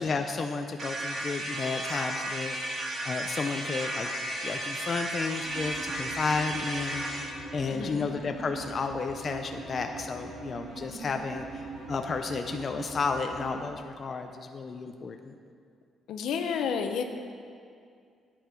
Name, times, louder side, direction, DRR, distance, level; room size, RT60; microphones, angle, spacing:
voice 1, 0.0-2.6 3.0-4.1 4.4-15.3, left 4 dB, 45° left, 5 dB, 0.6 m, -32 dB
sound 1, 0.8-7.3, right 1 dB, 60° right, 3.0 m, -34 dB
sound 2, 5.4-13.6, right 2 dB, 90° right, 2.5 m, -42 dB
voice 2, 7.7-8.0 16.1-17.0, left 6 dB, 80° left, 6 dB, 0.9 m, -30 dB
12.0 x 8.8 x 4.6 m, 2.3 s
cardioid pair, 90°, 0 cm